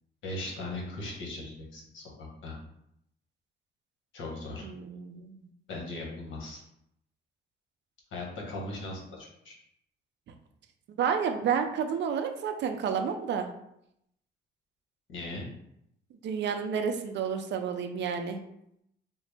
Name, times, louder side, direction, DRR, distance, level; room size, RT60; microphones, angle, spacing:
voice 1, 0.2-2.6 4.1-4.7 5.7-6.6 8.1-9.5 15.1-15.5, left 2 dB, 75° left, -2 dB, 1.1 m, -38 dB
voice 2, 4.6-5.5 11.0-13.5 16.2-18.4, right 7 dB, 65° right, 6 dB, 0.5 m, -30 dB
3.8 x 2.0 x 3.3 m, 0.76 s
cardioid pair, 90°, 20 cm